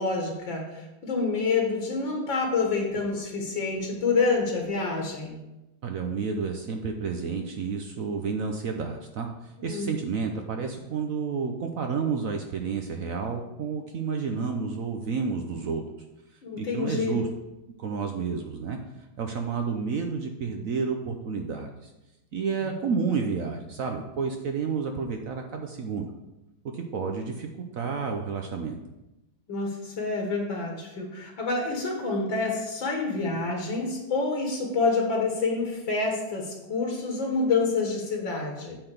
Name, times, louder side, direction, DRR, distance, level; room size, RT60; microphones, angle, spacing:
voice 1, 0.0-5.4 9.6-9.9 16.4-17.2 29.5-38.8, left 4 dB, 70° left, 1 dB, 2.1 m, -27 dB
voice 2, 5.8-15.8 16.5-17.3 17.8-21.9 22.3-26.1 26.7-27.5 27.7-28.8, right 5 dB, 70° right, 4 dB, 0.8 m, -30 dB
8.6 x 4.0 x 6.6 m, 0.98 s
omnidirectional pair, 2.2 m